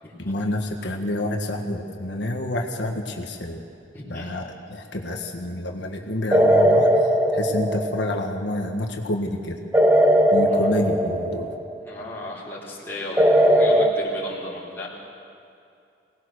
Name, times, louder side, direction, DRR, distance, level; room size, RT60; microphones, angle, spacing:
voice 1, 0.2-3.6 4.1-9.6 10.3-11.5, left 1 dB, 65° left, 2 dB, 1.7 m, -28 dB
voice 2, 3.9-4.4 10.5-10.7 11.8-14.9, left 2 dB, 10° left, -8 dB, 4.2 m, -35 dB
sound 1, 6.3-8.4 9.7-11.8 13.2-13.9, equal, 10° right, 1.0 m, -18 dB
24.5 x 19.0 x 6.5 m, 2.6 s
head